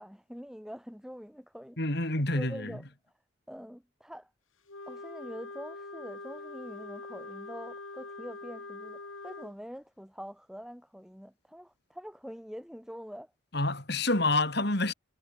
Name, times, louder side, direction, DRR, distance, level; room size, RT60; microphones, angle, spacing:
voice 1, 0.0-1.8 2.3-2.8 3.5-4.3 4.9-13.3, equal, 5° right, 4.9 m, -45 dB
voice 2, 1.8-2.8 13.5-14.9, left 2 dB, 55° left, 3.7 m, -28 dB
Wind instrument woodwind instrument, 4.7-9.5, left 3 dB, 80° left, 3.1 m, -44 dB
head